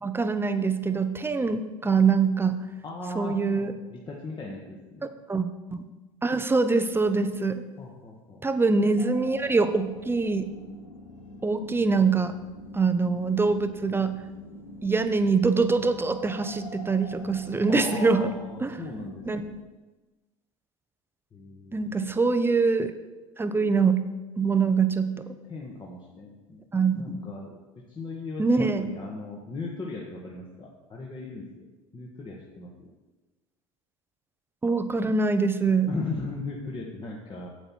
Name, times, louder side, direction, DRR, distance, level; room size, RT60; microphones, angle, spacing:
voice 1, 0.0-2.6 3.2-3.7 5.3-5.8 6.2-7.6 8.4-10.5 11.4-12.4 12.7-14.2 14.8-18.3 18.6-18.8 19.3-19.4 21.7-22.9 23.4-24.0 24.4-25.3 26.7-27.2 28.4-28.9 34.6-35.9, right 4 dB, 15° right, 9 dB, 0.7 m, -24 dB
voice 2, 2.8-5.1 7.8-8.4 12.3-12.4 17.7-19.6 21.3-22.1 25.5-26.6 27.0-28.4 28.8-31.7 31.9-32.9 35.9-37.5, left 3 dB, 30° left, -3 dB, 1.5 m, -38 dB
sound 1, 9.0-19.5, left 1 dB, 85° left, 1.2 m, -46 dB
8.1 x 8.0 x 4.5 m, 1.2 s
hypercardioid pair, 75°, 16 cm